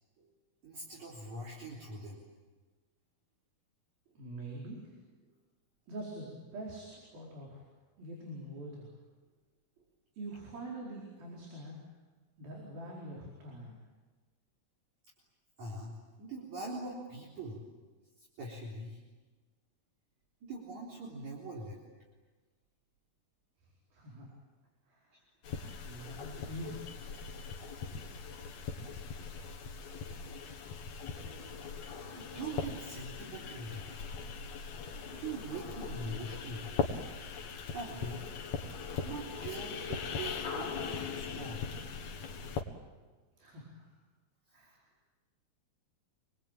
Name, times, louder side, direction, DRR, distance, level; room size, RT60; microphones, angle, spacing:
voice 1, 0.6-2.2 15.6-17.6 18.2-19.0 20.4-21.8 32.2-34.0 35.1-36.7 37.7-38.3 39.0-41.6, right 2 dB, 55° right, -4 dB, 5.2 m, -42 dB
voice 2, 4.1-4.9 5.9-7.6 8.0-8.9 10.1-11.8 12.4-13.8 23.6-24.3 24.9-25.3 25.8-27.0 27.9-28.0 28.5-28.7 43.4-43.9 44.5-44.8, right 1 dB, 85° right, -3 dB, 6.5 m, -45 dB
sound 1, 25.4-42.6, left 5 dB, 55° left, 2.8 m, -40 dB
28.0 x 22.0 x 9.1 m, 1.3 s
omnidirectional pair, 4.1 m